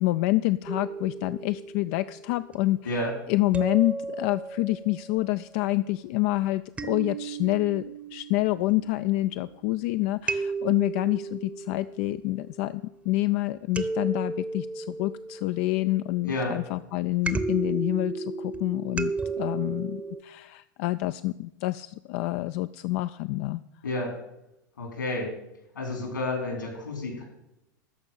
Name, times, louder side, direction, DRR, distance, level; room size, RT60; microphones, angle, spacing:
voice 1, 0.0-2.9 3.3-7.8 8.1-23.6, left 18 dB, 50° left, 13 dB, 0.4 m, -27 dB
sound 1, 0.7-2.7 3.5-5.0 6.8-9.7 10.3-12.9 13.7-16.0 17.3-20.2, right 3 dB, 15° right, 0.8 m, -34 dB
voice 2, 23.8-24.2 24.8-25.3 25.7-27.2, left 2 dB, 80° left, 2 dB, 4.1 m, -30 dB
13.5 x 5.2 x 8.9 m, 0.89 s
figure-of-eight pair, 90°, 10 cm